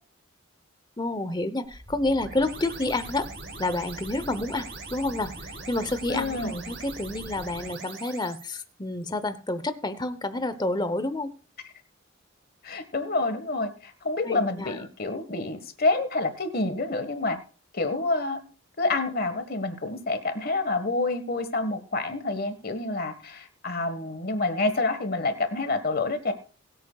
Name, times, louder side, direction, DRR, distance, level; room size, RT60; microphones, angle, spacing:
voice 1, 1.0-3.3 3.6-11.3 14.3-14.8, left 2 dB, 20° left, 12 dB, 0.8 m, -29 dB
sound 1, 1.6-8.4, right 2 dB, 50° right, 3.9 m, -41 dB
voice 2, 6.1-6.5 12.6-17.4 17.7-18.4 18.8-26.3, left 3 dB, 45° left, 10 dB, 1.5 m, -28 dB
21.5 x 8.4 x 2.4 m, 0.39 s
head